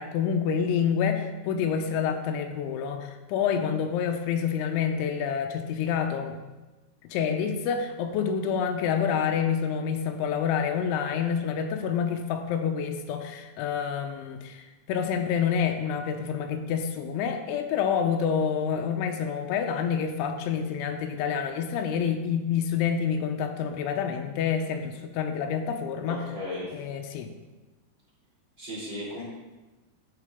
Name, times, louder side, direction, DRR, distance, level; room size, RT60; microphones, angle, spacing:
voice 1, 0.0-6.4 7.0-26.2 26.7-27.3, left 7 dB, 85° left, 5 dB, 3.1 m, -28 dB
voice 2, 26.0-26.7 28.6-29.2, left 1 dB, 25° right, -7 dB, 3.9 m, -35 dB
13.5 x 6.6 x 3.5 m, 1.1 s
omnidirectional pair, 5.3 m